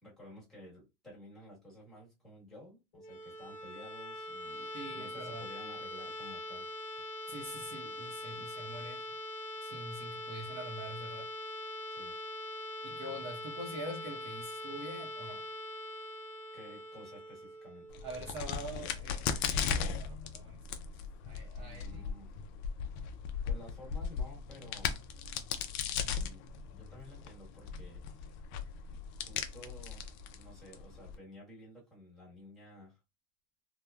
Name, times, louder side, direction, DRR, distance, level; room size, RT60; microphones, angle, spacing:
voice 1, 0.0-6.7 11.9-12.1 16.5-18.0 21.6-22.3 23.4-25.0 25.9-28.3 29.1-30.1 30.4-33.0, equal, ahead, 1.3 m, -53 dB
sound 1, 2.9-18.7, left 1 dB, 85° left, 0.6 m, -43 dB
voice 2, 4.7-5.4 7.3-9.0 9.6-11.3 12.8-15.4 18.0-20.6 21.2-22.0, right 1 dB, 35° right, 0.7 m, -45 dB
Crack, 17.9-31.2, left 7 dB, 45° left, 0.4 m, -38 dB
3.0 x 2.1 x 2.3 m
supercardioid pair, 160°, 16 cm